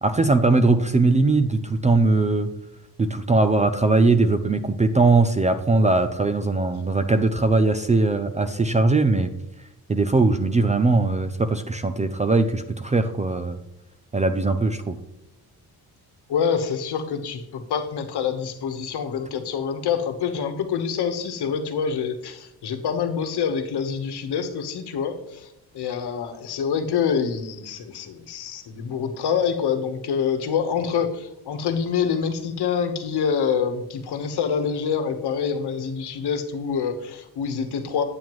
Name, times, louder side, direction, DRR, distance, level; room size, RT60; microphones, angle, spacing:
voice 1, 0.0-2.5 3.0-9.3 9.9-13.6 14.1-15.0, right 3 dB, 20° right, 9 dB, 0.3 m, -20 dB
voice 2, 16.3-38.0, left 6 dB, 80° left, 7 dB, 1.2 m, -26 dB
9.2 x 8.7 x 3.0 m, 0.85 s
wide cardioid pair, 170°, 39 cm